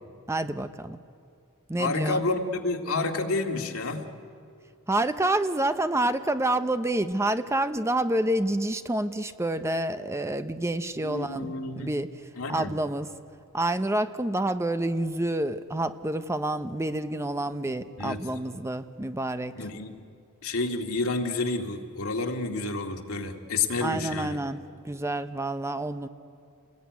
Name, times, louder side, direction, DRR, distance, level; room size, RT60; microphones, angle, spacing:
voice 1, 0.3-1.0 1.7-2.3 4.9-12.1 12.5-13.1 13.5-19.5 23.8-26.1, right 1 dB, 15° right, 10 dB, 0.7 m, -28 dB
voice 2, 1.8-4.1 11.0-11.9 12.4-12.7 18.0-18.2 19.6-20.0 20.4-24.4, left 3 dB, 75° left, 2 dB, 2.2 m, -29 dB
28.5 x 20.5 x 9.5 m, 2.4 s
head